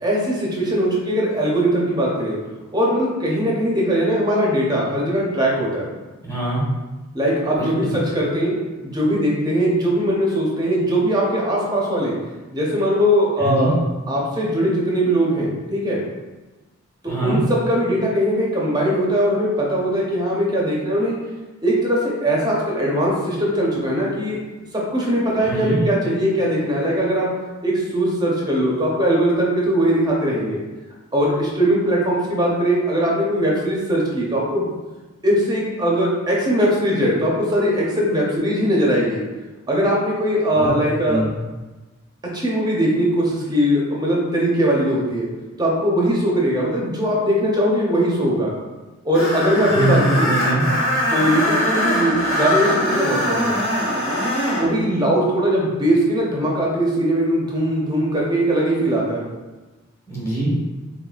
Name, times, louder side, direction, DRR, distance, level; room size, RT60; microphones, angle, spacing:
voice 1, 0.0-2.4 2.7-5.9 7.1-8.5 8.8-12.1 12.5-13.7 14.1-16.0 17.0-21.1 21.6-24.4 24.7-27.3 27.6-30.6 31.1-34.7 35.2-39.2 39.7-41.2 42.3-45.3 45.6-48.5 49.0-50.3 51.1-53.6 54.6-59.3, equal, 20° right, -3 dB, 0.7 m, -20 dB
voice 2, 6.2-6.6 7.5-7.9 13.4-13.8 17.1-17.4 25.4-25.8 40.6-40.7 41.0-41.3 49.7-50.7 60.1-60.5, right 2 dB, 15° left, -7 dB, 1.1 m, -22 dB
Screech, 49.1-54.7, equal, 80° left, 1.1 m, -22 dB
4.0 x 3.6 x 2.4 m, 1.2 s
head